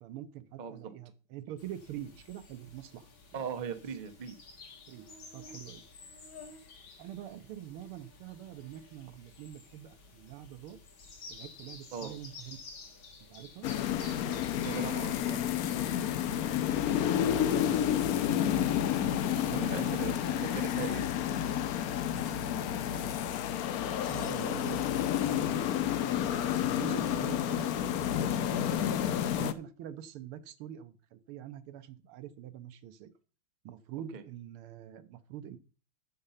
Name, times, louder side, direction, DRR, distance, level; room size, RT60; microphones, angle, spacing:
voice 1, 0.0-3.1 4.9-5.1 5.3-5.8 7.0-10.8 11.3-12.6 13.3-13.7 16.8-18.6 19.2-20.5 22.1-23.1 23.8-25.7 26.0-27.7 28.4-28.9 29.2-33.1 33.6-35.6, right 11 dB, 85° right, 12 dB, 1.7 m, -45 dB
sound 1, 1.6-16.9, left 3 dB, 70° left, 2.8 m, -52 dB
voice 2, 3.3-4.4 11.9-12.1 14.5-15.6 19.5-21.1 24.3-24.5 34.1-34.2, right 6 dB, 60° right, 9 dB, 0.4 m, -39 dB
sound 2, 13.6-29.5, left 10 dB, 90° left, 0.8 m, -30 dB
8.6 x 6.6 x 5.6 m, 0.37 s
omnidirectional pair, 2.3 m